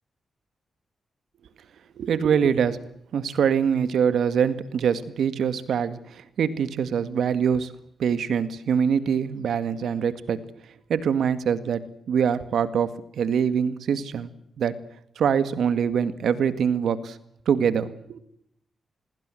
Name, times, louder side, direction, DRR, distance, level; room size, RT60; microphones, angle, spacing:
voice 1, 2.0-2.8 3.1-7.7 8.0-10.4 10.9-11.8 12.1-12.9 13.1-14.3 14.6-14.7 15.2-17.2 17.5-18.2, right 7 dB, 80° right, 13 dB, 2.0 m, -24 dB
27.0 x 21.0 x 7.8 m, 0.73 s
cardioid pair, 100°, 0 cm